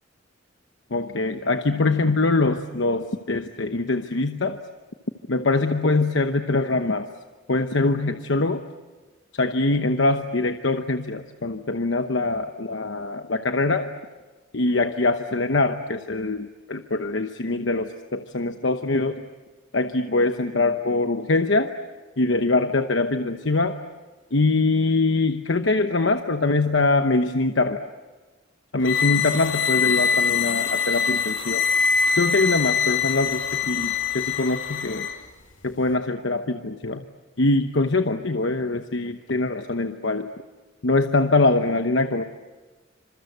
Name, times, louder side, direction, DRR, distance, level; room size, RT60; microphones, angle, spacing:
voice 1, 0.9-4.6 5.3-7.1 7.5-8.6 9.3-13.9 14.5-19.2 19.7-21.7 22.2-23.8 24.3-27.8 28.7-31.6 32.1-35.1 35.6-37.0 37.4-40.3 40.8-42.2, left 3 dB, 70° left, 7 dB, 1.0 m, -23 dB
sound 1, 28.8-35.2, left 6 dB, 90° left, 2.7 m, -24 dB
27.5 x 27.0 x 8.0 m, 1.3 s
head